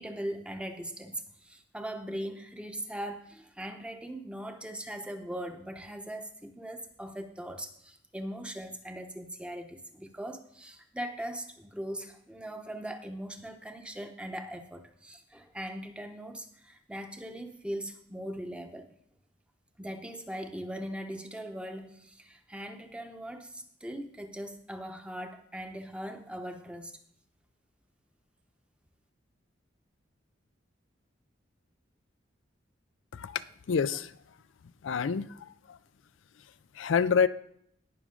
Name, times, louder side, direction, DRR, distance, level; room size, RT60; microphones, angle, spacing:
voice 1, 0.0-18.9 19.8-27.0, right 1 dB, 5° right, 6 dB, 0.9 m, -40 dB
voice 2, 33.1-34.1 34.8-35.8 36.7-37.3, left 6 dB, 80° left, 14 dB, 0.4 m, -28 dB
18.5 x 6.1 x 3.8 m, 0.68 s
head